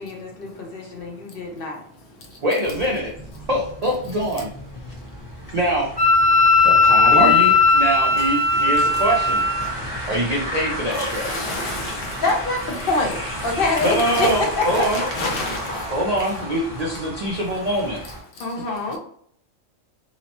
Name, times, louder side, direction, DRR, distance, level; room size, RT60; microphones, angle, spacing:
voice 1, 0.0-1.8 10.2-10.3 12.2-14.7 18.4-19.0, left 3 dB, 55° left, 0.8 m, -25 dB
voice 2, 2.4-3.1 3.5-4.5 5.5-5.9 7.2-9.4 9.8-11.5 13.8-15.0 15.9-18.0, right 1 dB, 60° right, 0.4 m, -23 dB
sound 1, 2.6-18.2, equal, 20° left, 0.9 m, -33 dB
Wind instrument woodwind instrument, 6.0-9.7, left 3 dB, 35° right, 1.1 m, -16 dB
voice 3, 6.9-7.3 11.2-12.2 15.2-15.6, left 2 dB, 80° left, 1.1 m, -27 dB
2.9 x 2.0 x 2.8 m
omnidirectional pair, 1.3 m